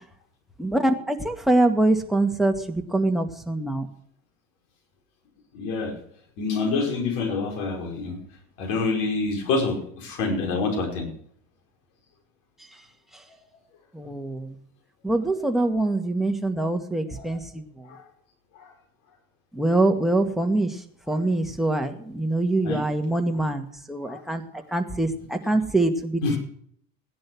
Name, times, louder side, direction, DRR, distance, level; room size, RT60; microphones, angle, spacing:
voice 1, 0.6-3.9 13.9-14.6 15.0-17.6 19.5-20.8 21.1-24.4 24.7-26.4, right 2 dB, ahead, 4 dB, 2.1 m, -24 dB
voice 2, 5.5-5.9 6.4-8.2 8.6-11.1 17.2-17.3 17.9-18.0 22.6-22.8 24.1-24.2 26.2-26.4, left 3 dB, 65° left, 2 dB, 5.2 m, -26 dB
16.0 x 10.5 x 6.2 m, 0.63 s
hypercardioid pair, 80°, 42 cm